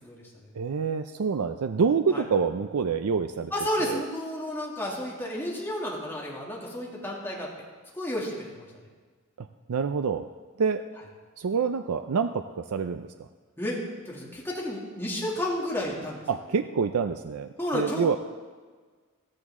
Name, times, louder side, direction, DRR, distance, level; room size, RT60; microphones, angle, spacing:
voice 1, 0.0-0.5 2.1-2.2 3.5-7.5 7.9-8.7 13.6-13.8 14.1-16.2 17.6-18.2, left 1 dB, 10° left, -4 dB, 2.5 m, -32 dB
voice 2, 0.6-3.5 3.8-4.0 9.7-10.3 10.6-10.8 11.4-13.1 16.3-17.5 17.7-18.2, right 5 dB, 85° right, 9 dB, 0.5 m, -26 dB
14.5 x 14.0 x 3.7 m, 1.5 s
head